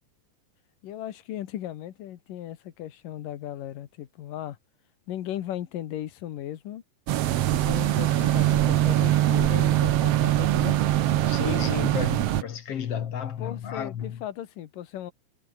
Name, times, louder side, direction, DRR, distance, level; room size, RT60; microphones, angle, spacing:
voice 1, 0.8-4.6 5.1-6.8 7.5-10.8 13.4-15.1, left 12 dB, 75° left, 3.1 m, -37 dB
sound 1, 7.1-12.4, right 13 dB, 70° right, 1.5 m, -22 dB
Bowed string instrument, 7.8-10.5, left 4 dB, 35° left, 3.6 m, -50 dB
voice 2, 11.3-14.2, left 8 dB, 55° left, 2.1 m, -32 dB
omnidirectional pair, 3.9 m